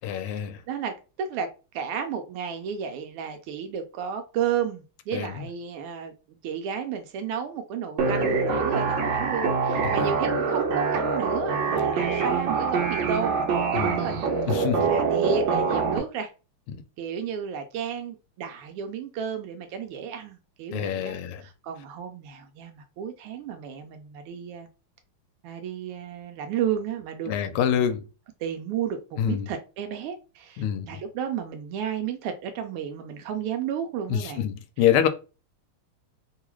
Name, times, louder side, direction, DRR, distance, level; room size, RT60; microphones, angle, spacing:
voice 1, 0.0-0.6 5.1-5.3 9.8-10.1 13.7-14.0 14.5-15.0 16.7-16.8 20.7-21.4 27.3-28.0 29.2-29.5 30.6-30.9 34.1-35.1, left 9 dB, 85° left, 1.5 m, -26 dB
voice 2, 0.7-1.5 1.7-14.2 14.7-16.3 17.0-24.7 25.4-27.8 28.4-34.5, right 7 dB, 85° right, 1.5 m, -32 dB
sound 1, 8.0-16.0, right 5 dB, 65° right, 1.3 m, -25 dB
3.7 x 2.3 x 3.0 m
omnidirectional pair, 2.4 m